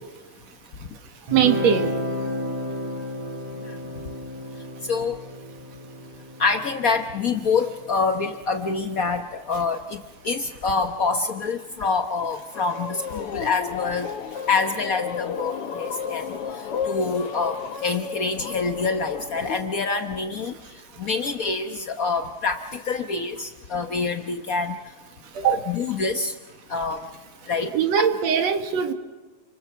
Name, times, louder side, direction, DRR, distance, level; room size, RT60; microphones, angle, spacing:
voice 1, 1.3-1.9 25.4-25.6 27.7-28.9, right 8 dB, 65° right, 7 dB, 2.7 m, -21 dB
Guitar, 1.3-8.4, left 1 dB, 80° right, 6.5 m, -33 dB
voice 2, 4.9-5.2 6.4-10.0 10.2-14.1 14.5-16.2 16.8-20.5 21.0-24.7 25.4-26.3 26.7-27.0 27.5-27.7, left 4 dB, 85° left, 6 dB, 0.7 m, -26 dB
sound 1, 12.5-19.6, left 7 dB, 60° left, 2.0 m, -32 dB
29.5 x 25.5 x 7.0 m, 1.3 s
omnidirectional pair, 3.3 m